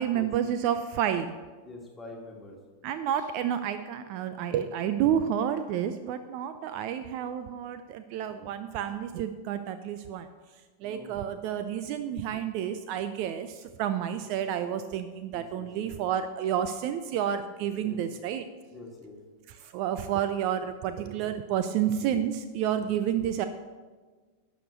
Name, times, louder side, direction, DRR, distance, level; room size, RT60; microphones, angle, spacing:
voice 1, 0.0-1.4 2.8-10.3 10.8-18.5 19.6-23.5, right 9 dB, 45° right, 10 dB, 0.5 m, -30 dB
voice 2, 1.6-2.6 10.8-11.2 14.2-14.3 15.3-15.9 17.8-18.0 18.7-19.2 23.1-23.2, left 2 dB, 10° left, -2 dB, 2.3 m, -45 dB
12.0 x 5.1 x 6.7 m, 1.4 s
figure-of-eight pair, 90°, 0 cm